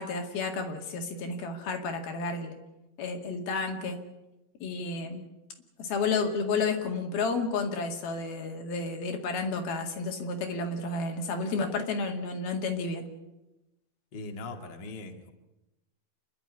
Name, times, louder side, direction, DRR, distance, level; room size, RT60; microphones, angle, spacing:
voice 1, 0.0-2.5 3.0-4.0 4.6-5.2 5.8-13.1, left 4 dB, 85° left, 4 dB, 4.2 m, -31 dB
voice 2, 14.1-15.3, left 2 dB, 35° left, 4 dB, 2.2 m, -40 dB
28.0 x 12.0 x 9.7 m, 0.98 s
omnidirectional pair, 4.2 m